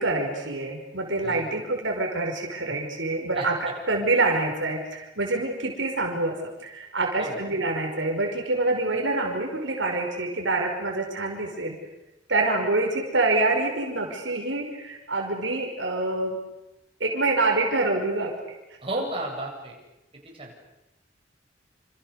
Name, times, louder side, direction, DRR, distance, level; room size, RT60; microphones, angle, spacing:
voice 1, 0.0-6.4 6.6-11.8 12.3-16.4 17.0-18.3, right 2 dB, 85° right, 2 dB, 5.4 m, -26 dB
voice 2, 1.2-1.6 3.3-3.5 7.2-7.4 18.8-19.7 20.1-20.5, right 1 dB, 30° right, -1 dB, 7.8 m, -33 dB
28.5 x 28.5 x 6.7 m, 0.95 s
head